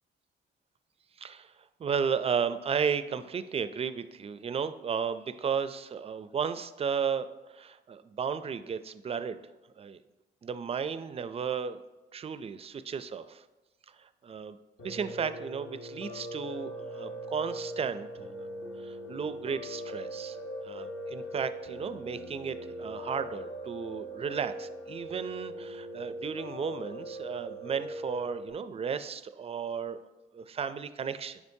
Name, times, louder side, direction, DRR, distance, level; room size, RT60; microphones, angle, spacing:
voice 1, 1.2-1.5 1.8-9.4 9.8-10.0 10.4-11.8 12.1-13.4 14.0-14.6 14.8-18.5 18.8-20.4 20.6-30.0 30.3-31.4, right 6 dB, 30° right, 12 dB, 0.4 m, -34 dB
Piano, 14.8-28.5, equal, 60° left, 1.6 m, -40 dB
9.6 x 5.0 x 2.7 m, 1.1 s
cardioid pair, 90°, 20 cm